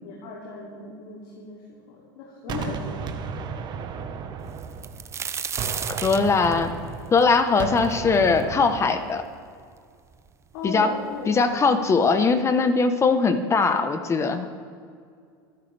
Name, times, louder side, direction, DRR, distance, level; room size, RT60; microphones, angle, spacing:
voice 1, 0.0-3.4 10.5-11.3, left 3 dB, 65° left, -3 dB, 2.9 m, -37 dB
Gunshot gunfire, 2.5-5.2 5.6-9.1, right 6 dB, 40° right, 1.2 m, -34 dB
sound 1, 4.6-8.4 8.9-9.0 9.8-9.9 10.1-10.8 11.7-11.8 12.2-12.4, right 7 dB, 25° right, 0.7 m, -33 dB
voice 2, 5.9-6.7 7.1-9.2 10.6-10.9 11.3-14.5, left 4 dB, 25° left, 9 dB, 1.1 m, -21 dB
26.5 x 10.5 x 3.5 m, 2.2 s
supercardioid pair, 110°, 11 cm